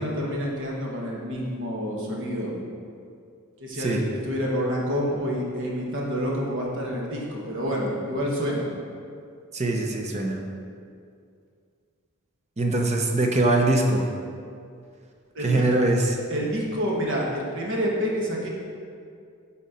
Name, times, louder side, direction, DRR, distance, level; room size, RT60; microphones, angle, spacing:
voice 1, 0.0-2.5 3.6-8.7 15.3-15.7 16.3-18.5, equal, 60° right, -2 dB, 1.4 m, -28 dB
voice 2, 9.5-10.4 12.6-14.1 15.4-16.2, right 2 dB, 30° right, 2 dB, 0.7 m, -22 dB
8.8 x 4.3 x 4.2 m, 2.3 s
head